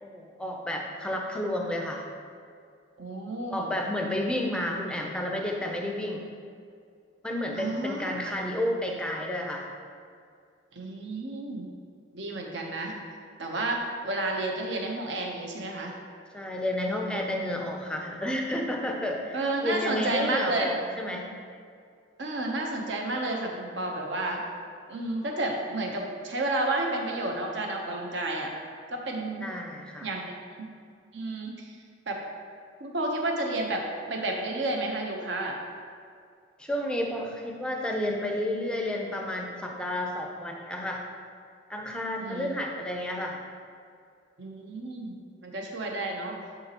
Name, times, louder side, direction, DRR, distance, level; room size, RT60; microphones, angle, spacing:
voice 1, 0.0-2.0 3.5-6.2 7.2-9.7 16.3-21.3 29.4-30.1 36.6-41.0 41.7-43.4, left 1 dB, 5° left, 1 dB, 0.5 m, -31 dB
voice 2, 3.0-3.7 7.5-8.3 10.7-11.7 12.1-12.9 13.4-15.9 19.3-20.7 22.2-24.4 24.9-28.5 28.9-29.5 30.0-30.3 30.6-30.7 31.1-31.8 32.1-32.2 32.8-33.8 34.1-35.6 42.2-42.5 44.4-45.1 45.4-46.4, right 2 dB, 65° right, 1 dB, 0.8 m, -31 dB
9.9 x 3.9 x 2.9 m, 2.3 s
head